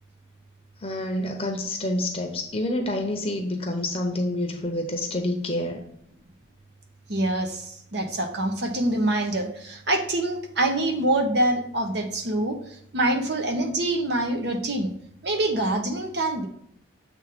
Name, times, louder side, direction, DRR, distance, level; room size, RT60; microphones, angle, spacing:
voice 1, 0.8-5.8, left 1 dB, 30° left, 3 dB, 0.8 m, -28 dB
voice 2, 7.1-14.9 15.2-16.5, right 1 dB, 55° right, 4 dB, 1.0 m, -25 dB
7.3 x 3.3 x 5.1 m, 0.70 s
head